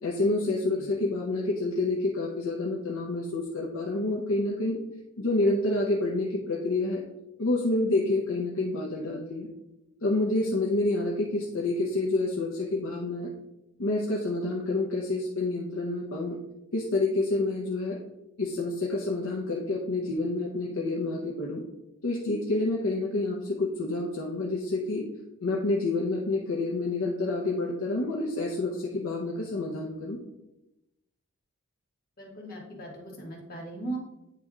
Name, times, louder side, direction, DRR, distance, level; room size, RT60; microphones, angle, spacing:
voice 1, 0.0-4.8 5.2-7.0 7.4-9.5 10.0-13.3 13.8-16.4 16.7-18.0 18.4-21.6 22.0-25.0 25.4-30.2, left 2 dB, 65° left, -2 dB, 0.8 m, -28 dB
voice 2, 32.2-34.0, right 2 dB, 45° left, -2 dB, 1.7 m, -38 dB
9.4 x 3.3 x 3.6 m, 0.93 s
head